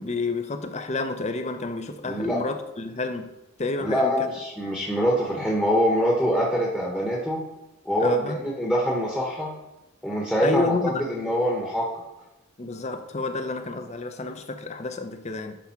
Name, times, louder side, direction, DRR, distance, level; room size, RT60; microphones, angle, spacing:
voice 1, 0.0-3.3 3.6-4.3 8.0-8.4 10.4-11.0 12.6-15.6, left 3 dB, 30° left, 8 dB, 0.6 m, -30 dB
voice 2, 2.0-2.4 3.8-7.4 7.8-9.5 10.0-11.9, equal, 5° left, -3 dB, 1.0 m, -24 dB
10.0 x 3.5 x 5.7 m, 0.96 s
head